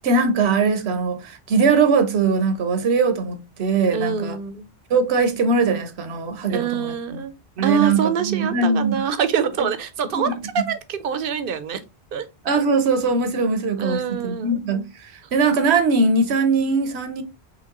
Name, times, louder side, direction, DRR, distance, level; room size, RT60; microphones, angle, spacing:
voice 1, 0.0-4.4 4.9-7.2 7.6-9.0 10.1-10.7 12.4-17.2, right 4 dB, 85° right, 1.1 m, -21 dB
voice 2, 3.9-4.7 6.5-7.3 7.6-11.8 12.1-12.3 13.8-14.6, right 6 dB, 65° right, 0.8 m, -25 dB
4.9 x 3.1 x 2.9 m
omnidirectional pair, 1.1 m